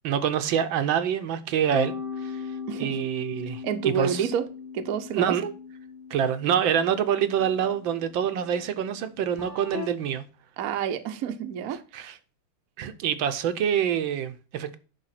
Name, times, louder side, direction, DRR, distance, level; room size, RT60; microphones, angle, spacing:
voice 1, 0.0-4.3 5.1-5.4 6.1-10.2 11.9-12.1 12.8-14.8, right 8 dB, 75° right, 1.5 m, -26 dB
sound 1, 1.7-9.9, left 6 dB, 10° left, 1.2 m, -39 dB
voice 2, 2.7-3.0 3.6-4.4 4.7-5.5 10.6-12.2, right 7 dB, 60° right, 1.0 m, -29 dB
10.5 x 3.5 x 5.8 m
omnidirectional pair, 2.2 m